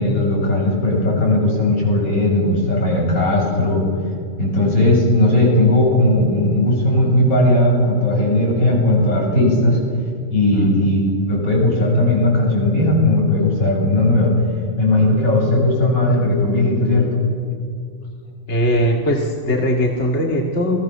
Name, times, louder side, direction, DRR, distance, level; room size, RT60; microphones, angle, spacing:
voice 1, 0.0-3.9 4.4-9.8 10.3-14.3 14.8-17.1, left 1 dB, 90° left, -3 dB, 8.3 m, -17 dB
voice 2, 10.5-10.9 18.5-20.8, equal, 55° left, 0 dB, 2.4 m, -20 dB
29.0 x 20.0 x 7.3 m, 2.3 s
omnidirectional pair, 1.4 m